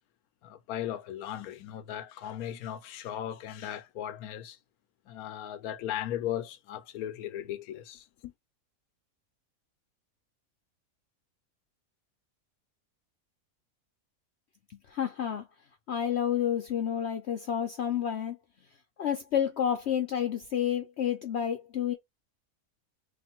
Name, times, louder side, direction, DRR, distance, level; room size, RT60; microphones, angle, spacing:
voice 1, 0.4-4.6 5.1-8.3, left 11 dB, 85° left, 1.1 m, -37 dB
voice 2, 14.9-15.5 15.9-18.4 19.0-21.9, left 9 dB, 60° left, 0.8 m, -29 dB
3.3 x 2.5 x 4.3 m
omnidirectional pair, 1.5 m